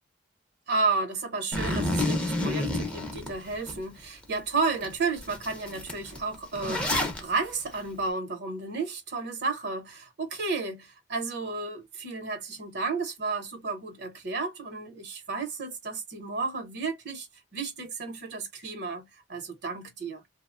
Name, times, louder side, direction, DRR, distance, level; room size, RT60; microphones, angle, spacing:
voice 1, 0.7-17.3 17.5-20.2, right 4 dB, 60° right, 0.8 m, -32 dB
Zipper (clothing), 1.5-3.7 4.2-4.3 4.8-4.9 5.2-7.2, left 1 dB, 5° left, 0.6 m, -29 dB
2.9 x 2.0 x 2.4 m
head